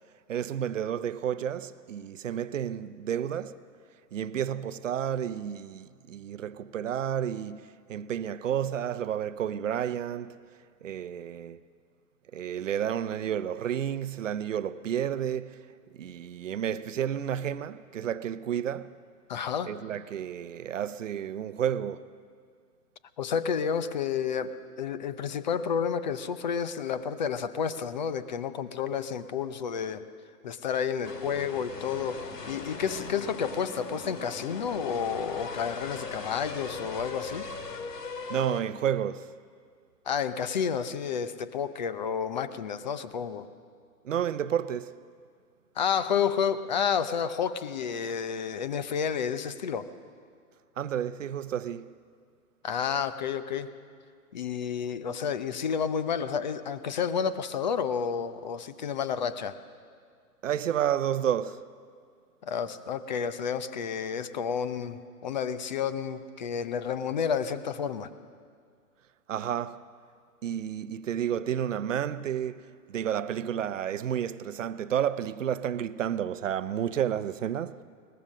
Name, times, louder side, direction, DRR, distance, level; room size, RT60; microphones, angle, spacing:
voice 1, 0.3-3.6 4.1-10.3 10.8-11.6 12.3-15.6 16.0-18.9 19.7-22.0 38.3-39.3 44.0-44.9 50.8-51.9 60.4-61.6 69.3-69.8 70.4-77.8, right 9 dB, 50° right, 0.8 m, -31 dB
voice 2, 19.3-19.7 23.2-24.5 24.8-30.0 30.4-37.5 40.1-43.5 45.8-49.9 52.6-53.7 54.3-59.6 62.4-68.1, left 7 dB, 30° left, 0.7 m, -30 dB
sound 1, 31.0-38.6, left 4 dB, 90° left, 2.5 m, -39 dB
22.0 x 20.0 x 6.5 m
hypercardioid pair, 150°, 47 cm